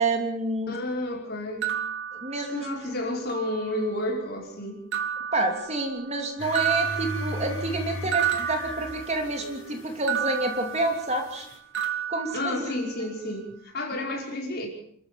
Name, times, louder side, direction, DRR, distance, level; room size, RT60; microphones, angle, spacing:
voice 1, 0.0-0.7 2.2-2.7 5.3-11.5 12.1-12.7, right 2 dB, 30° right, 4 dB, 3.0 m, -28 dB
voice 2, 0.7-1.7 2.4-4.8 12.3-14.7, left 1 dB, 50° left, 0 dB, 5.4 m, -31 dB
sound 1, 1.6-2.9 3.3-4.1 4.9-6.2 6.5-9.5 10.1-11.5 11.7-13.1, right 9 dB, 55° right, 2.4 m, -32 dB
sound 2, 6.4-11.6, left 1 dB, 65° left, 6.4 m, -38 dB
27.5 x 14.0 x 7.1 m, 0.67 s
head